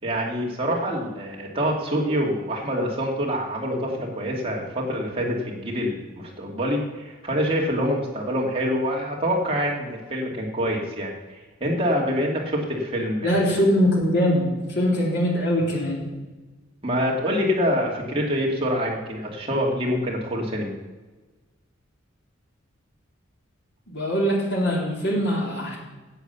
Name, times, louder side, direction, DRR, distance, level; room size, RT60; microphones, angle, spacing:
voice 1, 0.0-11.1 11.6-13.5 16.8-20.7, equal, 30° right, -2 dB, 2.4 m, -26 dB
voice 2, 13.2-16.0 23.9-25.8, equal, 55° left, -2 dB, 3.4 m, -22 dB
11.5 x 7.7 x 7.0 m, 1.2 s
head